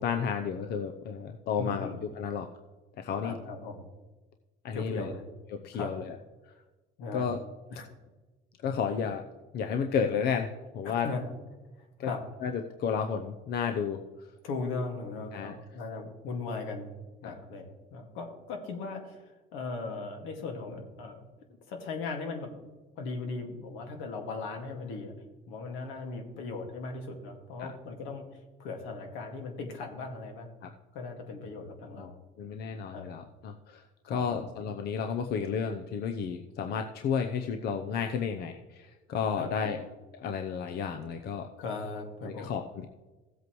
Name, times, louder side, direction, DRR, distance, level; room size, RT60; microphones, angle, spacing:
voice 1, 0.0-1.9 2.1-2.5 3.0-3.3 4.6-5.1 5.5-6.1 7.1-7.4 8.6-9.3 9.5-10.5 10.7-11.1 12.0-12.1 12.4-14.0 15.3-15.5 17.2-17.3 27.6-27.7 30.6-30.7 31.9-32.1 32.4-33.8 34.1-39.8 40.1-41.5 42.2-42.9, left 6 dB, 55° left, 5 dB, 0.7 m, -32 dB
voice 2, 1.6-2.0 3.2-3.9 4.7-5.3 5.7-5.9 7.0-7.3 7.7-7.9 10.8-11.3 11.8-12.2 14.4-16.9 17.2-21.3 21.7-22.5 23.0-25.1 25.5-30.5 30.9-32.2 32.9-33.1 34.0-34.5 39.4-39.9 41.6-42.6, left 3 dB, 80° left, 3 dB, 2.0 m, -38 dB
15.5 x 8.0 x 3.1 m, 1.2 s
cardioid pair, 125°, 20 cm